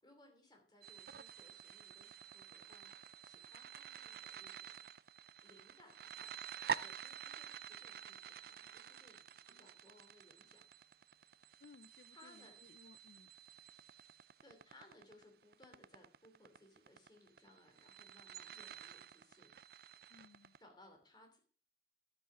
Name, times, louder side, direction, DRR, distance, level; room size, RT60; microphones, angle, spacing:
voice 1, 0.0-4.8 5.4-10.6 12.1-12.6 14.4-19.5 20.6-21.4, left 1 dB, 25° left, 3.0 m, -64 dB
sound 1, 0.8-20.6, right 7 dB, 55° right, 0.4 m, -49 dB
voice 2, 11.6-13.3 20.1-20.6, left 4 dB, 70° left, 0.4 m, -62 dB
11.5 x 8.1 x 5.0 m
head